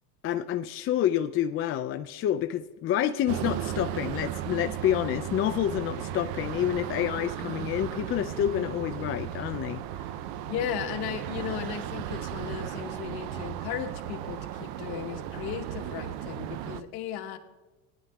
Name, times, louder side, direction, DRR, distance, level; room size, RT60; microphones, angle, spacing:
voice 1, 0.2-9.8, left 11 dB, 30° left, 9 dB, 0.4 m, -28 dB
sound 1, 3.3-16.8, right 11 dB, 65° right, 0.6 m, -35 dB
voice 2, 10.5-17.4, left 10 dB, 55° left, 6 dB, 1.3 m, -36 dB
18.0 x 10.5 x 2.3 m, 1.1 s
supercardioid pair, 100°, 44 cm